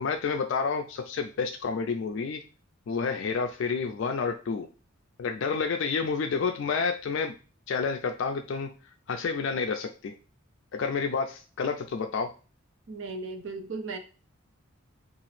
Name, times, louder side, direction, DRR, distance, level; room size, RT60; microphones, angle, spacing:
voice 1, 0.0-2.4 2.9-4.7 5.2-7.3 7.7-8.7 9.1-10.1 10.7-12.3, left 5 dB, 60° left, 0.3 m, -29 dB
voice 2, 12.9-14.0, right 3 dB, 60° right, 0.5 m, -36 dB
2.8 x 2.4 x 3.1 m
head